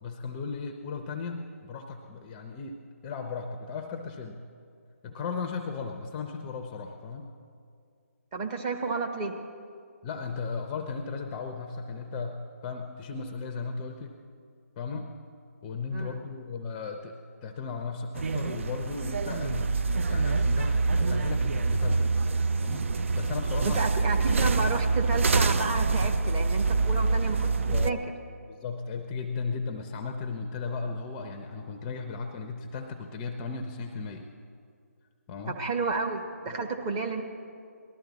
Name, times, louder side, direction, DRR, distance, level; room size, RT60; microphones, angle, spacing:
voice 1, 0.0-4.4 5.0-7.3 10.0-14.2 14.8-15.1 15.6-17.2 17.4-19.7 20.1-22.1 22.6-23.8 27.7-28.0 28.5-34.3 35.3-35.6 36.5-36.7, left 4 dB, 15° left, 4 dB, 0.6 m, -36 dB
voice 2, 8.3-9.3 15.9-16.2 23.7-28.0 35.5-37.2, right 4 dB, 20° right, 3 dB, 1.0 m, -31 dB
sound 1, 18.2-27.9, right 3 dB, 55° right, 0.5 m, -26 dB
19.0 x 13.0 x 4.0 m, 2.3 s
figure-of-eight pair, 155°, 8 cm